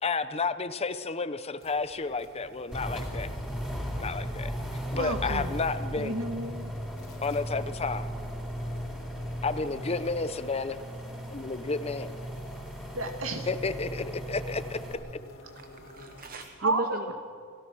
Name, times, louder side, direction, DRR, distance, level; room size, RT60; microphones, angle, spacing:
voice 1, 0.0-3.3 4.0-4.5 4.9-6.2 7.2-8.1 9.4-10.8 11.3-12.1 13.5-14.8, left 4 dB, 30° left, 12 dB, 0.7 m, -31 dB
sound 1, 1.6-16.5, left 1 dB, 70° left, 3.3 m, -53 dB
sound 2, 2.7-14.9, equal, 5° right, 4.0 m, -36 dB
voice 2, 5.0-5.6 6.0-6.7 12.9-13.5 16.6-17.1, right 2 dB, 70° right, 5 dB, 2.1 m, -31 dB
voice 3, 15.6-17.1, right 2 dB, 40° right, 8 dB, 0.8 m, -37 dB
29.0 x 15.5 x 6.2 m, 2.1 s
head